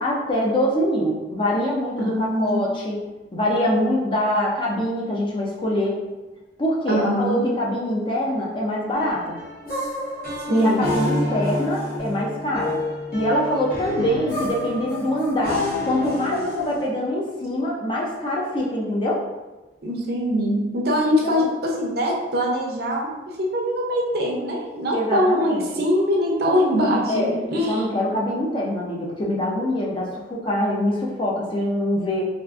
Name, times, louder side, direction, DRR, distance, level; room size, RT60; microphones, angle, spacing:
voice 1, 0.0-3.0 3.3-6.0 6.6-9.4 10.5-12.8 13.1-19.2 21.2-21.5 24.9-25.8 27.1-32.2, left 1 dB, 30° left, -3 dB, 0.5 m, -24 dB
voice 2, 2.0-2.6 6.9-7.4 10.5-10.9 19.8-27.9, equal, 55° right, -1 dB, 0.6 m, -23 dB
sound 1, 8.9-16.9, left 1 dB, 55° left, 1.4 m, -29 dB
3.4 x 2.5 x 2.4 m, 1.1 s
head